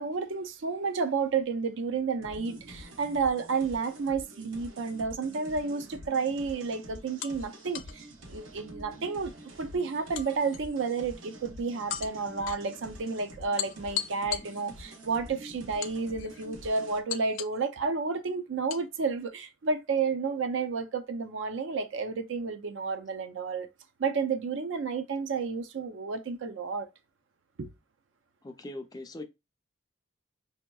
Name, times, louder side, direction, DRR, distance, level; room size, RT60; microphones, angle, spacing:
voice 1, 0.0-9.3 9.6-23.7 24.0-26.9 27.6-27.7, right 4 dB, 70° right, 0.5 m, -31 dB
sound 1, 2.2-17.0, equal, 90° right, 0.9 m, -47 dB
sound 2, 5.9-6.1 7.2-8.0 10.2-11.0 11.9-12.6 13.6-15.0 15.8-16.5 17.1-17.7 18.7-18.9, left 11 dB, 80° left, 0.5 m, -38 dB
voice 2, 28.4-29.2, left 2 dB, 20° left, 0.4 m, -40 dB
5.1 x 2.8 x 2.2 m
head